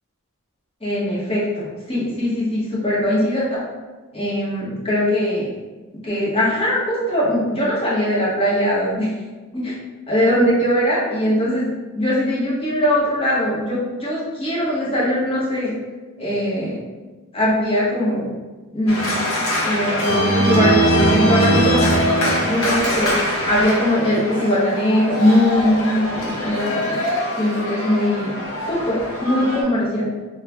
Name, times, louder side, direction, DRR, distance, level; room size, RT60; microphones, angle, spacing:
voice 1, 0.8-3.6 4.1-5.5 6.0-9.1 9.5-9.7 10.1-11.7 11.9-15.7 16.2-16.8 17.3-18.3 18.7-19.1 19.6-27.0 27.4-28.3 28.7-30.1, left 1 dB, 25° left, -8 dB, 1.1 m, -20 dB
Organ, 18.9-29.6, equal, 75° left, 1.0 m, -22 dB
3.2 x 2.2 x 3.5 m, 1.2 s
head